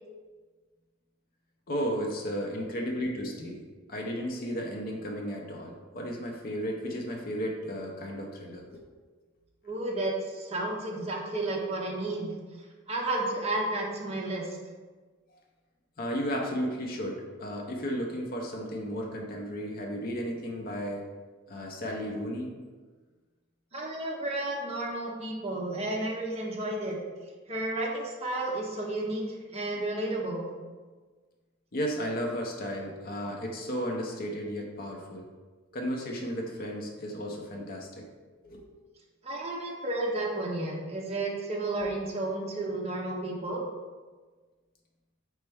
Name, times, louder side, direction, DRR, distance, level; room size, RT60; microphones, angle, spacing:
voice 1, 1.7-3.6 3.9-8.8 16.0-21.1 21.5-22.5 31.7-35.3 35.7-38.1 38.4-38.6, equal, 40° left, 0 dB, 0.6 m, -34 dB
voice 2, 9.6-12.3 12.9-14.6 23.7-27.0 27.5-29.2 29.5-30.5 39.2-43.6, right 2 dB, 30° right, -1 dB, 0.6 m, -32 dB
4.2 x 3.3 x 3.4 m, 1.4 s
head